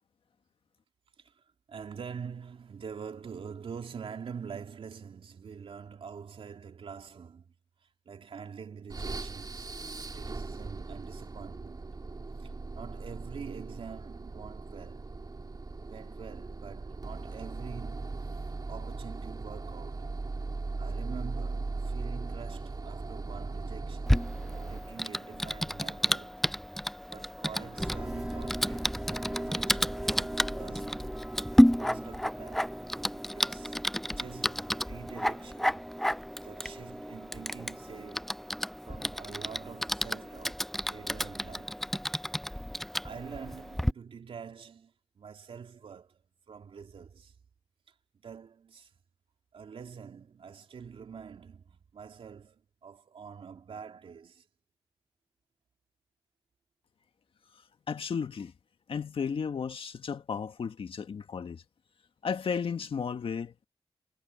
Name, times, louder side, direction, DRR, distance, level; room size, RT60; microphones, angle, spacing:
voice 1, 1.2-7.5 7.8-12.0 12.4-15.2 15.8-20.1 20.8-24.4 24.7-26.5 27.0-31.1 31.7-32.7 33.0-33.8 34.0-35.9 36.4-38.4 38.8-41.9 42.6-42.7 43.0-46.2 46.5-47.4 48.2-48.9 49.5-54.5, right 6 dB, 75° right, 2.7 m, -46 dB
sound 1, 8.9-25.0, right 3 dB, 45° right, 3.1 m, -39 dB
Typing, 24.1-43.9, equal, 5° left, 0.4 m, -31 dB
sound 2, 27.8-41.8, right 1 dB, 15° right, 4.2 m, -42 dB
voice 2, 57.9-58.5 58.9-61.6 62.2-63.7, left 6 dB, 75° left, 1.9 m, -34 dB
cardioid pair, 40°, 9 cm